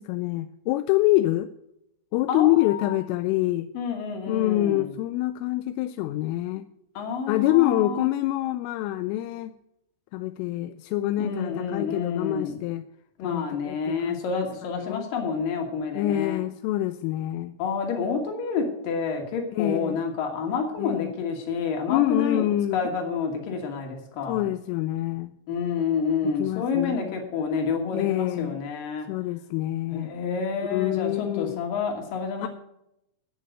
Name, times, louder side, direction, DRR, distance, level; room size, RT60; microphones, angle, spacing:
voice 1, 0.0-1.5 2.1-3.7 4.3-6.7 7.3-9.5 10.1-12.8 13.2-14.4 14.7-15.1 15.9-17.5 19.5-20.0 20.8-21.1 21.9-22.8 24.3-25.3 26.4-27.2 27.9-28.6 29.1-30.1 30.7-31.6 32.4-32.5, left 15 dB, 85° left, 11 dB, 3.2 m, -26 dB
voice 2, 2.3-3.0 3.7-4.9 7.0-8.1 11.2-12.6 13.2-16.4 17.6-24.5 25.5-29.1 29.9-32.5, left 5 dB, 50° left, 3 dB, 3.6 m, -29 dB
18.0 x 6.5 x 6.7 m, 0.81 s
omnidirectional pair, 5.7 m